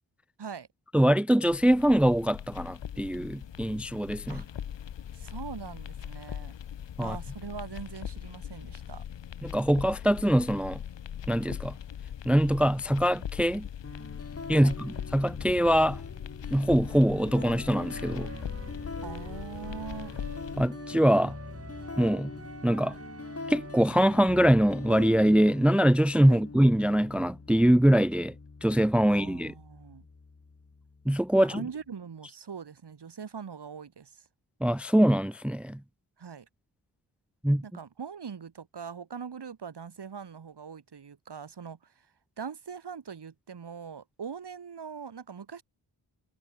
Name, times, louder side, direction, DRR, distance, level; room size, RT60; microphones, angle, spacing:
voice 1, 0.9-4.4 7.0-7.2 9.4-10.8 11.3-11.7 12.3-13.7 14.5-16.0 16.5-18.3 20.6-21.3 22.0-22.3 22.6-23.0 23.5-28.3 28.6-29.5 31.1-31.6 34.6-35.8 37.4-37.6, equal, 5° right, 0.7 m, -23 dB
sound 1, 1.4-20.7, left 9 dB, 80° left, 1.5 m, -41 dB
voice 2, 5.1-6.5 7.0-9.0 14.6-14.8 19.0-20.1 26.3-26.4 29.1-30.1 31.4-34.2 36.2-36.5 37.6-41.9 42.4-45.6, right 6 dB, 65° right, 7.6 m, -42 dB
sound 2, 13.8-31.8, left 4 dB, 35° left, 4.8 m, -43 dB
sound 3, 16.9-24.7, right 4 dB, 35° right, 2.8 m, -47 dB
wide cardioid pair, 145°, 43 cm